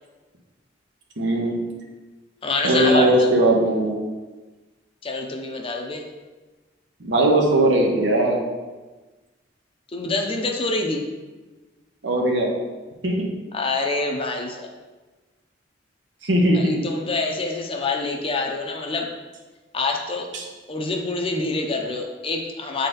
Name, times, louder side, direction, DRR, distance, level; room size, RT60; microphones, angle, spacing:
voice 1, 1.2-1.6 2.6-4.0 7.0-8.4 12.0-12.5 13.0-13.3 16.2-16.8 20.3-20.5, right 1 dB, 75° right, 0 dB, 1.2 m, -19 dB
voice 2, 2.4-3.3 5.0-6.0 9.9-11.0 13.5-14.7 16.5-19.1 19.7-20.3 20.7-22.9, left 3 dB, 30° left, 2 dB, 0.7 m, -26 dB
7.9 x 4.2 x 3.9 m, 1.2 s
head